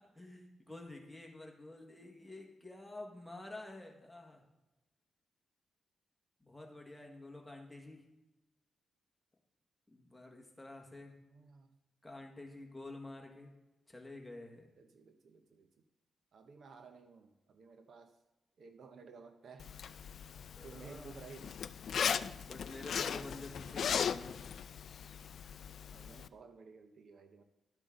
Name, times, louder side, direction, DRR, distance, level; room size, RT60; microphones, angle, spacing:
voice 1, 0.1-4.4 6.4-8.0 9.9-11.1 12.0-13.5 13.9-14.7 20.6-21.3 22.5-24.5, left 2 dB, 5° left, 0 dB, 1.6 m, -49 dB
voice 2, 11.3-11.8 14.8-15.7 16.3-18.2 18.6-19.7 20.6-21.5 25.9-27.4, right 4 dB, 60° right, 7 dB, 0.7 m, -55 dB
Zipper (clothing), 19.6-26.3, left 7 dB, 60° left, 0.3 m, -38 dB
12.0 x 7.8 x 3.8 m, 1.0 s
wide cardioid pair, 145°, 0 cm